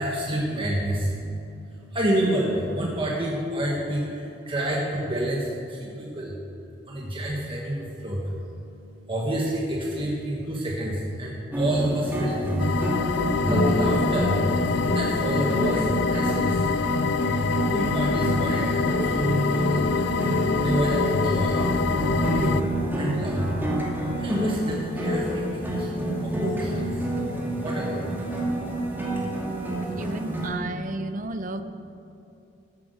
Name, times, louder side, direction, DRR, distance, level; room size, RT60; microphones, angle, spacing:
voice 1, 0.0-6.4 6.9-16.7 17.7-21.7 22.3-22.7 22.9-23.6 24.2-27.1 27.6-28.1 29.9-30.0, right 1 dB, 30° right, -3 dB, 1.4 m, -29 dB
sound 1, 11.5-30.5, equal, 10° right, 2.2 m, -28 dB
sound 2, 12.6-22.6, left 4 dB, 65° left, 0.4 m, -25 dB
voice 2, 30.0-31.6, right 2 dB, 45° right, 10 dB, 0.7 m, -32 dB
15.0 x 8.5 x 6.6 m, 2.8 s
head